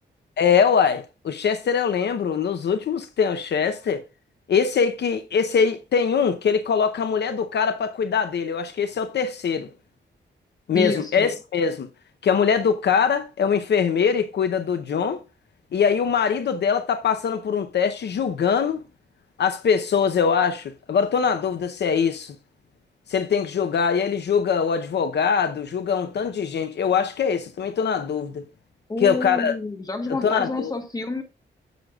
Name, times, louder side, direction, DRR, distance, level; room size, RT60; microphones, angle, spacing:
voice 1, 0.4-4.0 4.5-9.7 10.7-11.9 12.2-15.2 15.7-18.8 19.4-22.3 23.1-28.4 29.0-29.5 30.2-30.7, left 6 dB, 65° left, 0.7 m, -22 dB
voice 2, 10.7-11.3 28.9-31.2, left 3 dB, 20° left, 1.3 m, -28 dB
10.0 x 7.6 x 2.4 m
wide cardioid pair, 165°, 19 cm